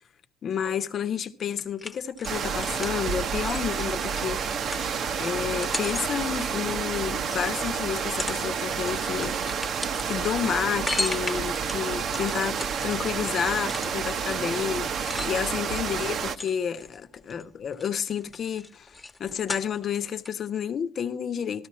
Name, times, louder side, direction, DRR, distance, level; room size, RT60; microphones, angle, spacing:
voice 1, 0.4-4.6 5.2-9.4 10.0-21.7, left 8 dB, 45° left, 1.1 m, -30 dB
sound 1, 1.6-7.4 7.9-8.5 8.7-15.7 16.2-17.4 17.7-20.0 20.3-20.4, left 2 dB, 20° left, 1.4 m, -37 dB
sound 2, 2.2-16.4, right 6 dB, 50° right, 1.0 m, -29 dB
14.0 x 13.5 x 4.2 m
figure-of-eight pair, 60°, 0 cm